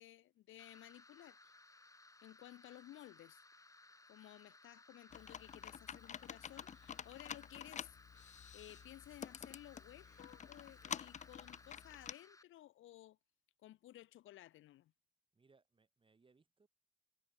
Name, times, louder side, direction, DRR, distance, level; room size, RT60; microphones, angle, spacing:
voice 1, 0.0-1.4 2.2-3.4 4.1-13.2 13.6-14.9, left 14 dB, 85° left, 2.2 m, -57 dB
sound 1, 0.6-12.4, left 2 dB, 15° left, 2.5 m, -63 dB
Computer keyboard, 5.1-12.1, left 8 dB, 35° left, 0.5 m, -49 dB
voice 2, 15.3-16.7, right 4 dB, 25° right, 2.7 m, -71 dB
cardioid pair, 90°, 20 cm